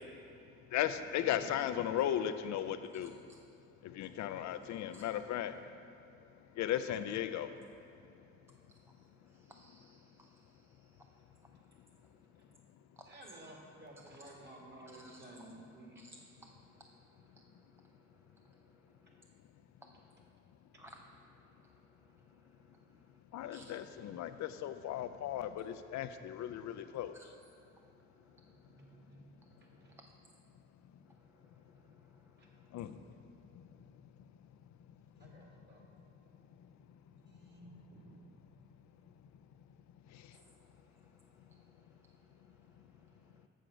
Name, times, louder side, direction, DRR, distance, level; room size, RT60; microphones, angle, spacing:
voice 1, 0.7-3.1 3.8-5.5 6.6-7.5 23.3-27.1 32.7-33.0, left 11 dB, 70° left, 10 dB, 0.4 m, -36 dB
voice 2, 1.2-1.6 13.1-16.0 24.0-24.1 28.8-29.2 29.6-29.9 31.7-31.9 32.4-32.5 35.2-35.8 37.3-38.2, right 1 dB, 35° right, -1 dB, 1.8 m, -54 dB
voice 3, 8.7-11.1 13.0-13.1 15.0-15.3 16.0-17.6 17.9-18.0 18.4-18.7 19.0-19.2 19.8-20.1 20.8-22.8 23.5-23.7 27.1-27.3 27.7-29.0 29.8-30.1 31.2-31.5 31.8-32.6 40.4-40.7 41.0-41.1 41.5-41.6 41.9-42.1 43.2-43.4, right 1 dB, 10° right, 2 dB, 0.4 m, -62 dB
7.8 x 6.6 x 4.9 m, 2.6 s
cardioid pair, 90°, 30 cm